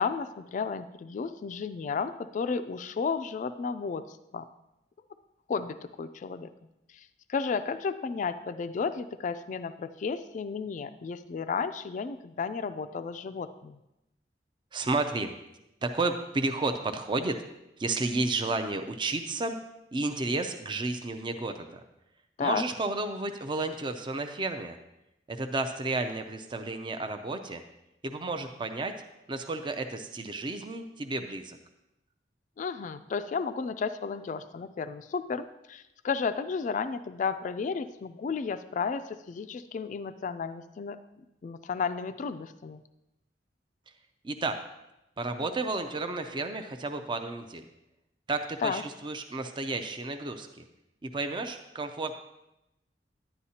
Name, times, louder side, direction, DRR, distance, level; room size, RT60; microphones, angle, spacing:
voice 1, 0.0-4.4 5.5-6.5 6.9-13.8 22.4-22.6 32.6-41.0 41.4-42.8 48.6-48.8, left 5 dB, 45° left, 10 dB, 0.3 m, -33 dB
voice 2, 14.7-15.3 15.8-17.4 17.8-19.6 19.9-21.8 22.4-24.8 25.3-27.6 28.0-28.9 29.3-31.6 44.2-44.6 45.2-47.7 48.3-50.6 51.0-52.1, right 3 dB, 25° right, 7 dB, 0.4 m, -32 dB
10.0 x 9.8 x 2.8 m, 0.91 s
head